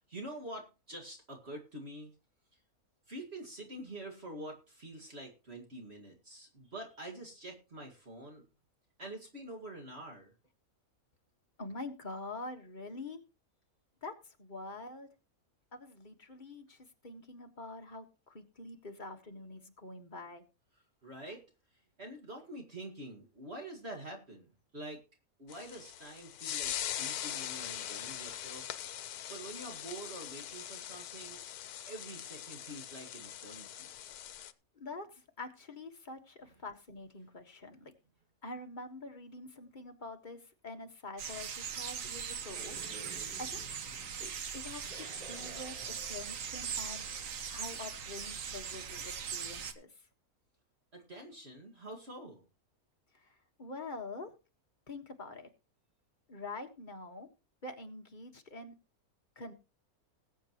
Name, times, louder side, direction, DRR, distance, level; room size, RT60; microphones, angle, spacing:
voice 1, 0.0-2.1 3.1-8.4 9.0-10.3 21.0-21.5 21.7-25.0 25.4-28.8 29.3-31.4 31.9-33.9 50.9-52.4, right 1 dB, 45° right, 1 dB, 2.3 m, -46 dB
voice 2, 11.6-13.2 14.0-15.1 15.7-20.4 34.8-37.9 38.4-42.8 43.4-43.7 44.2-45.7 46.1-47.1 47.5-49.9 53.1-54.3 54.9-55.5 56.3-57.3 57.6-58.7 59.3-59.5, left 2 dB, 35° left, 4 dB, 1.6 m, -45 dB
sound 1, 25.5-34.5, left 11 dB, 85° left, 1.2 m, -42 dB
sound 2, 41.2-49.7, right 7 dB, 65° right, 1.4 m, -40 dB
sound 3, 42.3-47.8, equal, 5° right, 5.9 m, -53 dB
20.5 x 8.1 x 3.0 m, 0.30 s
omnidirectional pair, 1.6 m